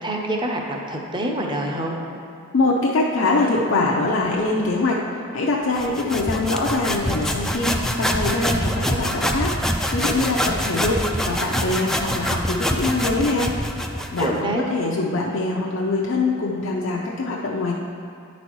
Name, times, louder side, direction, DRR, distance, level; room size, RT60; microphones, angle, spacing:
voice 1, 0.0-2.0 14.2-14.6, right 1 dB, 25° right, 1 dB, 0.7 m, -26 dB
voice 2, 2.5-9.5 9.9-13.5 14.1-17.7, left 2 dB, 65° left, -3 dB, 0.6 m, -23 dB
sound 1, 5.7-14.4, equal, ahead, 0.3 m, -25 dB
9.9 x 4.1 x 4.6 m, 2.4 s
head